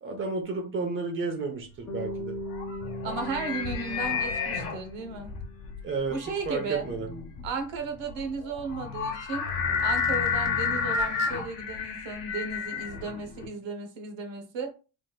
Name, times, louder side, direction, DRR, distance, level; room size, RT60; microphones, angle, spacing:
voice 1, 0.0-2.4 5.8-6.2 6.5-7.1, right 4 dB, 25° right, 3 dB, 0.8 m, -31 dB
Bass guitar, 1.9-6.1, left 1 dB, 35° left, 0.9 m, -39 dB
sound 1, 2.0-13.5, left 5 dB, 55° left, 1.2 m, -31 dB
voice 2, 3.0-5.3 6.1-6.8 7.4-9.5 9.8-14.7, right 4 dB, 80° right, 5 dB, 0.9 m, -35 dB
3.5 x 3.0 x 2.2 m, 0.33 s
cardioid pair, 145°, 45 cm